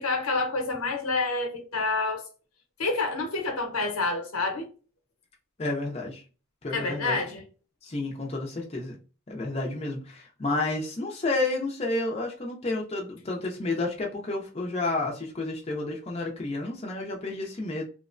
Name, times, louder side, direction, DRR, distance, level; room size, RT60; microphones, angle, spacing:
voice 1, 0.0-2.3 2.8-4.7 6.7-7.4, left 3 dB, 90° left, 0.8 m, -28 dB
voice 2, 5.6-6.2 6.6-7.2 7.8-9.0 9.3-17.9, left 2 dB, 30° left, 0.5 m, -30 dB
2.9 x 2.1 x 2.4 m
head